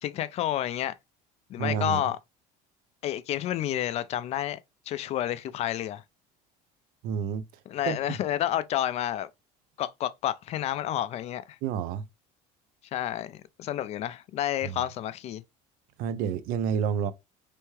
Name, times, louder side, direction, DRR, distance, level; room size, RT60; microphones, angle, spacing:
voice 1, 0.0-1.0 1.5-2.2 3.0-4.6 4.9-6.0 7.7-9.3 9.8-11.6 12.9-15.4, left 12 dB, 40° left, 0.4 m, -30 dB
voice 2, 1.6-2.0 7.0-7.4 7.9-8.2 11.6-12.0 14.6-14.9 16.0-17.1, right 7 dB, 60° right, 0.5 m, -29 dB
4.4 x 3.4 x 3.1 m
cardioid pair, 155°, 17 cm